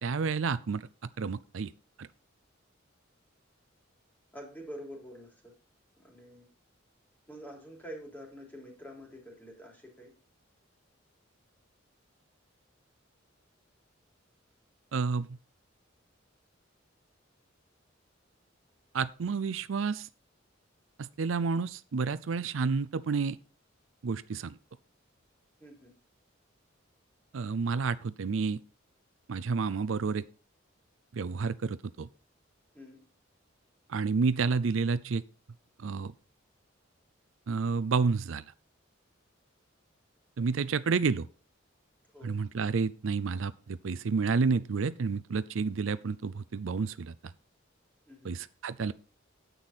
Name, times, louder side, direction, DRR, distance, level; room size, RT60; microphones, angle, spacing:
voice 1, 0.0-0.9 1.2-1.7 2.0-2.1 14.9-15.3 18.9-20.1 21.0-23.4 24.0-24.6 27.3-28.6 29.3-30.2 31.1-32.1 33.9-35.2 35.8-36.1 37.5-38.4 40.4-41.3 42.2-47.1 48.2-48.9, right 5 dB, 75° right, 0.5 m, -30 dB
voice 2, 4.3-5.5 6.0-6.5 7.3-10.1 25.6-25.9 32.7-33.0 42.1-42.3 48.1-48.3, equal, 10° left, 3.5 m, -47 dB
9.6 x 8.3 x 4.2 m
head